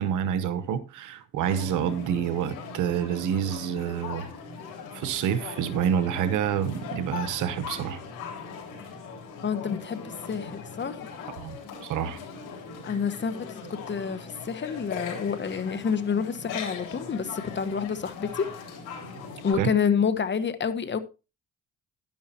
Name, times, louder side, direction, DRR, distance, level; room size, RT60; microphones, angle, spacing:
voice 1, 0.0-4.3 4.9-8.0 11.4-12.2 19.6-19.7, right 8 dB, 90° right, 1.0 m, -28 dB
sound 1, 1.4-19.5, left 5 dB, 90° left, 3.7 m, -40 dB
voice 2, 9.4-11.1 12.8-18.5 19.4-21.0, left 6 dB, 40° left, 1.2 m, -28 dB
11.0 x 10.5 x 2.8 m
cardioid pair, 90°, 30 cm